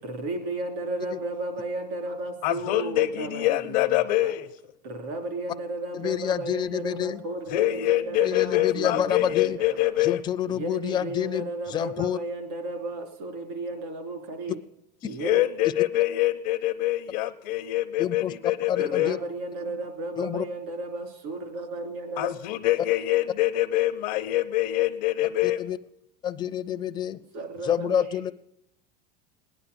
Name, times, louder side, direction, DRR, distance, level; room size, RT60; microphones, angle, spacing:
voice 1, 0.0-4.3 4.8-9.9 10.5-14.6 15.0-15.5 18.8-22.3 27.3-28.1, right 2 dB, 75° right, 5 dB, 3.2 m, -34 dB
voice 2, 2.4-4.5 7.5-10.2 15.2-19.1 22.2-25.6, left 15 dB, 70° left, 4 dB, 0.8 m, -25 dB
voice 3, 5.9-7.2 8.2-9.6 10.0-12.2 18.0-19.2 20.2-20.5 25.4-25.8 26.2-27.2 27.6-28.3, left 10 dB, 20° left, 9 dB, 0.4 m, -28 dB
18.5 x 9.9 x 6.9 m, 0.85 s
supercardioid pair, 135°, 21 cm